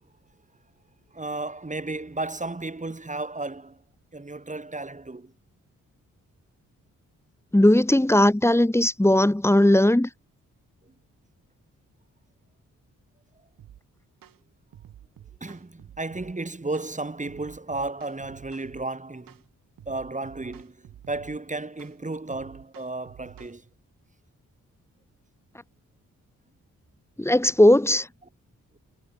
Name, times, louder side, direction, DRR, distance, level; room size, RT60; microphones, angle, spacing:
voice 1, 1.1-3.8 4.1-5.3 15.4-19.4 19.9-23.6, right 2 dB, 20° right, 2.3 m, -33 dB
voice 2, 7.5-10.1 27.2-28.1, left 1 dB, 10° left, 1.4 m, -18 dB
sound 1, 13.6-13.8 14.2-14.4 14.7-16.3 16.7-16.9 17.3-18.9 19.3-19.5 19.8-21.4 21.8-22.0 22.3-23.6, right 11 dB, 80° right, 3.0 m, -49 dB
supercardioid pair, 45°, 34 cm